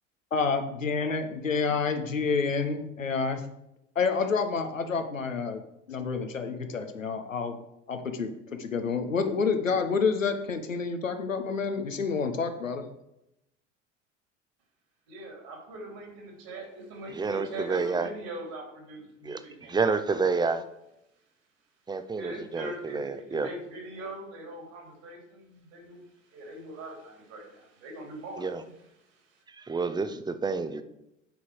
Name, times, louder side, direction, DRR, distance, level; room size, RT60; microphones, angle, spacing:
voice 1, 0.3-3.4 4.0-5.6 5.9-7.5 7.9-8.3 8.6-12.8, left 5 dB, 85° left, 7 dB, 1.0 m, -28 dB
voice 2, 15.1-19.9 22.1-28.7 29.0-29.4, right 1 dB, 55° right, 0 dB, 3.3 m, -42 dB
voice 3, 17.1-18.1 19.2-19.4 19.7-20.6 21.9-23.5 28.4-28.6 29.5-30.8, right 4 dB, 10° right, 10 dB, 0.6 m, -29 dB
8.9 x 5.5 x 4.9 m, 0.84 s
figure-of-eight pair, 70°, 38 cm